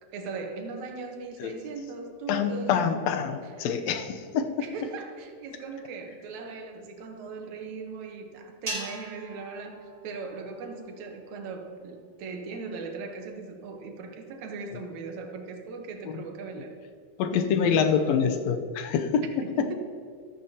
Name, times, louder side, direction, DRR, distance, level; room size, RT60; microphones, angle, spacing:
voice 1, 0.0-3.1 3.4-3.5 4.6-9.8 10.0-16.7 17.3-17.5 19.4-19.7, right 4 dB, 75° right, 3 dB, 2.4 m, -39 dB
voice 2, 2.3-4.5 16.1-16.2 17.2-19.2, left 7 dB, 75° left, 7 dB, 1.8 m, -26 dB
sound 1, 8.7-11.1, right 1 dB, 30° right, 0.8 m, -40 dB
14.0 x 13.0 x 2.8 m, 2.3 s
omnidirectional pair, 3.4 m